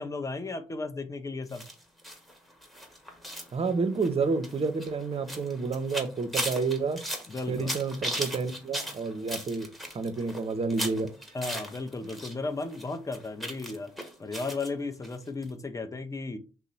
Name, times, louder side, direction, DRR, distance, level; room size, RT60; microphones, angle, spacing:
voice 1, 0.0-1.6 7.3-7.7 11.3-13.9 14.2-16.4, left 3 dB, 20° left, 0.6 m, -35 dB
sound 1, 1.5-12.3 12.6-14.7 15.0-15.1 15.4-15.5, equal, ahead, 1.0 m, -38 dB
voice 2, 3.5-7.0 7.5-11.1, right 4 dB, 40° right, 0.6 m, -30 dB
2.8 x 2.0 x 3.9 m
hypercardioid pair, 45°, 16 cm